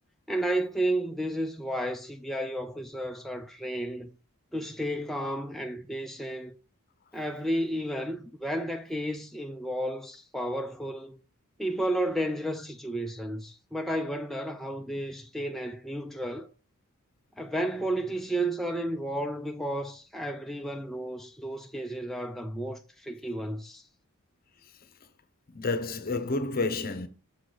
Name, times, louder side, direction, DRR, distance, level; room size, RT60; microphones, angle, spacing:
voice 1, 0.3-4.1 4.5-6.5 7.1-11.2 11.6-16.5 17.4-23.8, right 1 dB, ahead, 0.4 m, -32 dB
voice 2, 25.5-27.1, left 3 dB, 45° left, 0.8 m, -29 dB
7.0 x 4.7 x 3.9 m
head